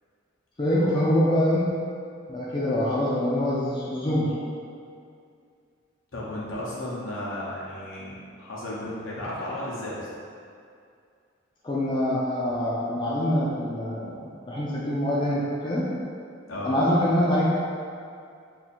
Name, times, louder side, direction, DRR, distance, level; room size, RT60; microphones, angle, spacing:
voice 1, 0.6-1.8 2.3-4.3 11.6-15.9 16.6-17.6, left 1 dB, 25° left, -7 dB, 0.4 m, -24 dB
voice 2, 6.1-10.1 16.5-16.7, left 1 dB, 75° left, -7 dB, 0.9 m, -34 dB
2.7 x 2.7 x 4.2 m, 2.3 s
head